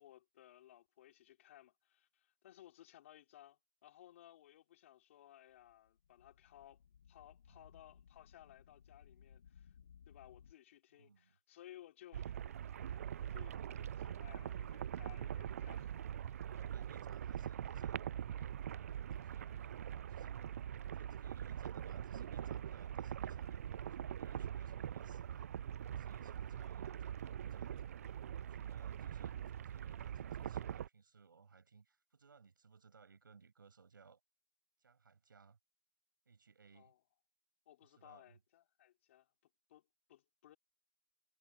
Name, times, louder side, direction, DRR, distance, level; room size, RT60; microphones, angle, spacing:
voice 1, 0.0-6.8 7.1-9.7 10.1-12.3 13.2-15.9 26.5-26.7 36.7-36.9 37.7-39.3 39.7-40.6, left 13 dB, 40° left, 3.3 m, -60 dB
sound 1, 5.5-10.5, left 8 dB, 60° left, 1.4 m, -62 dB
voice 2, 11.0-11.4 16.4-20.4 20.9-25.5 25.8-34.2 34.8-35.6 36.3-36.9 37.9-38.4, right 5 dB, 85° right, 7.1 m, -64 dB
sound 2, 12.1-30.9, right 9 dB, 45° right, 0.4 m, -43 dB
hypercardioid pair, 160°, 11 cm